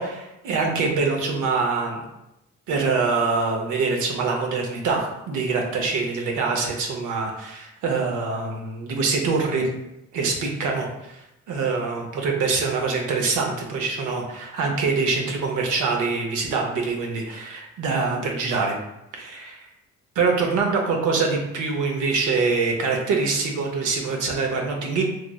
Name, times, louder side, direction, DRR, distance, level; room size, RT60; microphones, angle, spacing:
voice 1, 0.0-2.0 2.7-9.7 10.1-18.8 19.1-19.7 20.2-25.0, right 4 dB, 85° right, 1 dB, 0.6 m, -24 dB
3.0 x 2.4 x 2.2 m, 0.88 s
cardioid pair, 90°, 30 cm